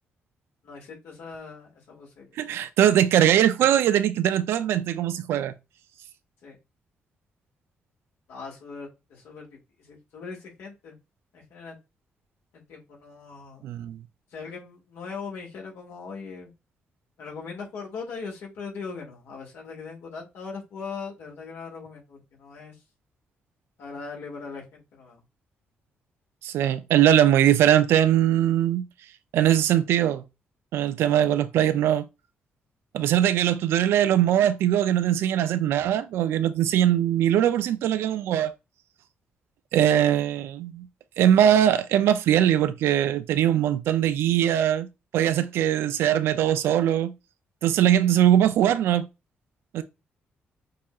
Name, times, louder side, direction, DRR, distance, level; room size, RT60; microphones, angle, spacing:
voice 1, 0.6-2.3 6.4-6.6 8.3-11.0 11.3-11.8 12.5-13.7 14.3-16.5 17.2-22.8 23.8-25.2, left 5 dB, 85° left, 2.2 m, -40 dB
voice 2, 2.4-5.5 13.6-14.0 26.4-28.8 29.3-30.2 30.7-32.1 32.9-38.5 39.7-40.9 41.2-44.9 45.1-47.1 47.6-49.1 49.7-49.8, right 11 dB, 90° right, 0.5 m, -21 dB
6.6 x 2.8 x 2.4 m
cardioid pair, 95°, 4 cm